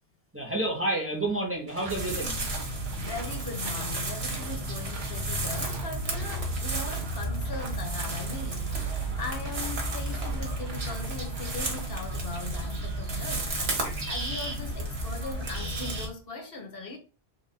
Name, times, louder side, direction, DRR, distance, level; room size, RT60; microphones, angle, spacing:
voice 1, 0.3-2.4, right 1 dB, 15° right, 0.8 m, -29 dB
sound 1, 1.7-12.0, right 4 dB, 45° right, 1.2 m, -46 dB
sound 2, 1.9-16.1, right 1 dB, 65° right, 1.4 m, -32 dB
voice 2, 3.0-17.0, left 2 dB, 60° left, 0.9 m, -40 dB
3.8 x 2.5 x 4.0 m
omnidirectional pair, 1.1 m